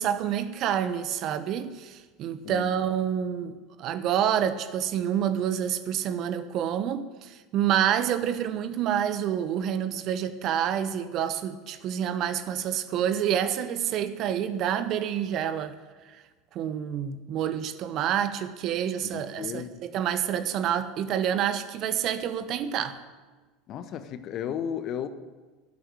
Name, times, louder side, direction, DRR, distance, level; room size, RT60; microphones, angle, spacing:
voice 1, 0.0-15.7 16.1-16.2 16.5-23.0, right 9 dB, 50° right, 1.2 m, -28 dB
voice 2, 2.4-2.7 19.0-19.8 23.7-25.1, left 9 dB, 45° left, 1.3 m, -34 dB
12.0 x 9.6 x 10.0 m
hypercardioid pair, 75°, 0 cm